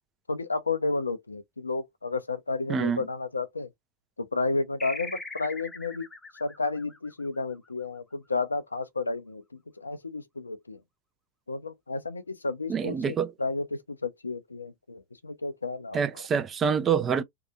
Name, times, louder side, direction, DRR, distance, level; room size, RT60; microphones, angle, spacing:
voice 1, 0.3-3.7 4.2-6.1 6.4-10.8 11.5-16.0, left 3 dB, 80° left, 0.5 m, -32 dB
voice 2, 2.7-3.0 12.7-13.3 15.9-17.2, right 6 dB, 25° right, 0.5 m, -26 dB
sound 1, 4.8-7.8, left 2 dB, 10° left, 0.8 m, -41 dB
2.8 x 2.4 x 2.3 m
figure-of-eight pair, 90°, 0 cm